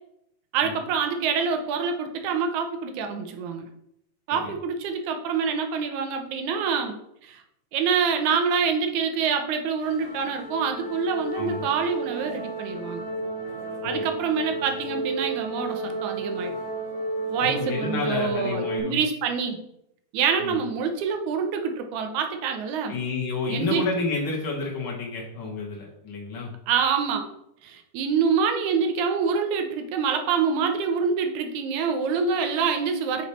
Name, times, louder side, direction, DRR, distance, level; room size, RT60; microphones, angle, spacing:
voice 1, 0.5-3.7 4.3-7.0 7.2-7.4 7.7-13.0 13.8-16.5 17.3-19.6 20.1-22.9 23.5-23.8 26.7-27.3 27.6-33.2, right 6 dB, 75° right, 5 dB, 1.9 m, -26 dB
sound 1, 9.8-18.8, right 2 dB, 50° left, 2.6 m, -32 dB
voice 2, 11.3-11.7 13.8-14.0 17.5-19.0 20.4-20.5 22.9-26.5, left 3 dB, 85° left, -3 dB, 1.1 m, -30 dB
9.0 x 3.3 x 4.1 m, 0.77 s
omnidirectional pair, 4.1 m